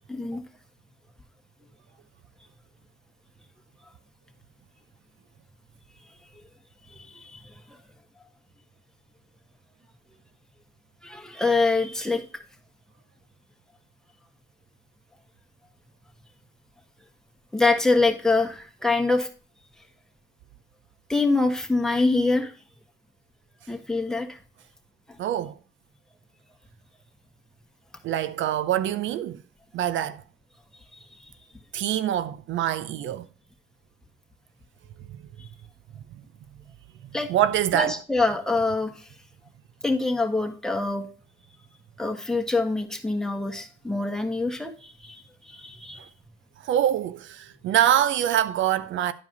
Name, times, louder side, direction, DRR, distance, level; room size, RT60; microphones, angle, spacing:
voice 1, 0.1-0.4 6.3-6.4 6.9-7.5 11.0-12.2 17.5-19.3 21.1-22.5 23.7-24.4 37.1-37.3 37.7-38.9 39.8-41.1 42.0-46.0, left 3 dB, 5° left, 1.7 m, -25 dB
voice 2, 25.2-25.5 28.0-29.4 29.7-30.2 31.7-33.3 35.1-35.2 37.3-37.9 46.6-49.1, right 11 dB, 75° right, 0.5 m, -24 dB
11.0 x 4.8 x 4.0 m
cardioid pair, 90°, 20 cm